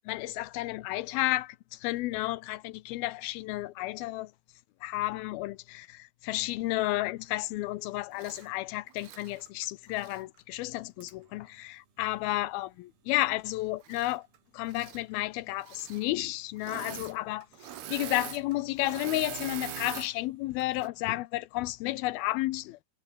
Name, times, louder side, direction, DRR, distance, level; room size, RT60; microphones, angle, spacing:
voice 1, 0.1-4.3 4.8-14.3 14.5-17.5 17.9-22.8, left 18 dB, 80° left, 2.5 m, -32 dB
Engine / Mechanisms, 8.1-8.5 8.9-10.2 11.0-11.1 13.8-14.4 14.6-15.0 15.6-16.0 16.6-17.2 17.4-20.1 20.6-20.9, right 11 dB, 85° right, 4.1 m, -42 dB
omnidirectional pair, 4.4 m